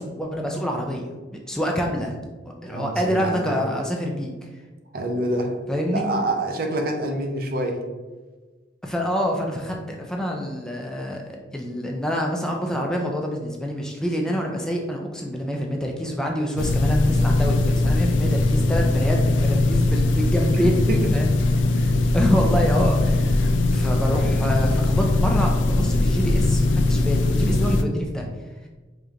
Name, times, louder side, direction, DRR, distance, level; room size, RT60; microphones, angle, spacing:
voice 1, 0.0-2.2 2.4-4.5 5.7-6.1 8.8-20.9 21.1-21.3 22.1-28.3, equal, 5° left, 0 dB, 0.3 m, -26 dB
voice 2, 2.7-3.6 4.9-5.6 5.9-7.8 20.5-20.6 20.9-21.0 21.8-21.9, right 1 dB, 50° right, 3 dB, 0.6 m, -27 dB
sound 1, 16.6-27.8, left 2 dB, 85° left, 0.4 m, -20 dB
5.0 x 2.8 x 2.4 m, 1.3 s
head